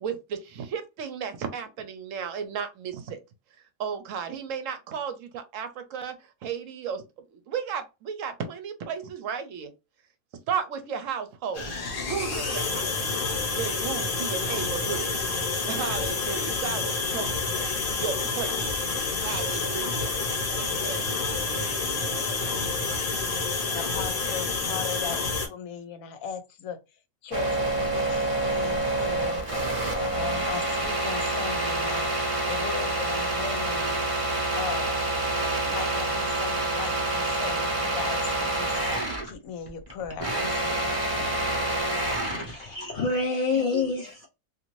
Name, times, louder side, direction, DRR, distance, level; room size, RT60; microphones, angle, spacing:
voice 1, 0.0-3.2 3.8-6.1 6.4-7.0 7.5-9.7 10.5-11.7 12.1-12.9 13.6-15.1 15.7-17.5 17.9-18.8 19.2-20.1 20.6-21.1 21.3-22.3 42.8-42.9, right 7 dB, 70° right, 0.9 m, -34 dB
sound 1, 11.5-25.5, left 4 dB, 45° left, 1.0 m, -28 dB
voice 2, 23.7-25.2 25.5-26.8 27.2-32.1 32.5-34.0 34.5-38.7 39.2-41.6, left 7 dB, 80° left, 1.0 m, -38 dB
sound 2, 27.3-39.3 39.7-42.5, right 2 dB, 30° right, 0.8 m, -27 dB
voice 3, 42.3-44.3, left 3 dB, 60° left, 0.5 m, -27 dB
2.6 x 2.5 x 3.0 m
omnidirectional pair, 1.5 m